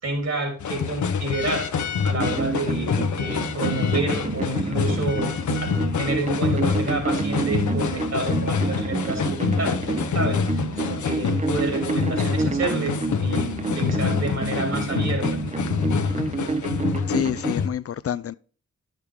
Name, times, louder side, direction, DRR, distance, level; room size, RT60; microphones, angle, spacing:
voice 1, 0.0-1.7 2.0-2.9 3.2-9.8 10.1-10.4 10.8-15.2, right 2 dB, 60° right, 3.3 m, -29 dB
sound 1, 0.6-17.7, left 6 dB, 80° left, 0.9 m, -26 dB
sound 2, 2.2-17.5, right 4 dB, 25° right, 0.6 m, -29 dB
voice 2, 17.1-18.3, left 9 dB, 55° left, 0.4 m, -27 dB
10.5 x 6.6 x 3.6 m
cardioid pair, 50°, 29 cm